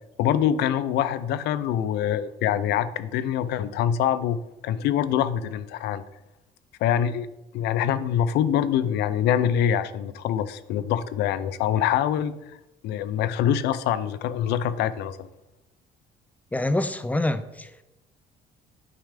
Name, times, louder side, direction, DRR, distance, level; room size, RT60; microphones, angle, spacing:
voice 1, 0.2-6.0 6.8-7.3 7.5-12.3 12.8-15.3, left 9 dB, 80° left, 0.5 m, -24 dB
voice 2, 16.5-17.8, left 1 dB, 10° left, 0.4 m, -26 dB
9.2 x 3.3 x 4.9 m
cardioid pair, 110°, 17 cm